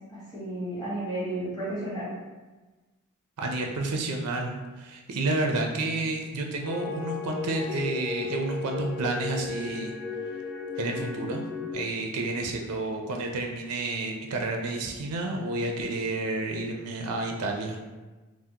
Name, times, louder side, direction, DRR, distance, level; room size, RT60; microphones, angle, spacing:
voice 1, 0.1-2.1, right 1 dB, 15° left, -11 dB, 1.5 m, -33 dB
voice 2, 3.4-9.9 10.8-11.5 11.7-17.8, right 2 dB, 85° right, 2 dB, 0.4 m, -30 dB
sound 1, 6.6-11.7, left 5 dB, 50° left, 0.6 m, -35 dB
3.5 x 2.0 x 2.7 m, 1.2 s
head